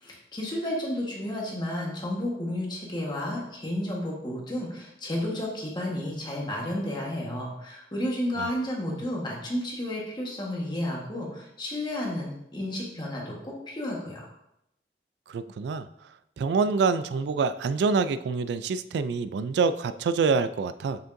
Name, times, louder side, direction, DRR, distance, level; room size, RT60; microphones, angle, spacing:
voice 1, 0.0-14.3, left 1 dB, 25° left, -2 dB, 1.3 m, -32 dB
voice 2, 15.3-15.9 16.4-21.0, right 4 dB, 75° right, 13 dB, 0.3 m, -26 dB
7.0 x 6.3 x 2.6 m, 0.82 s
head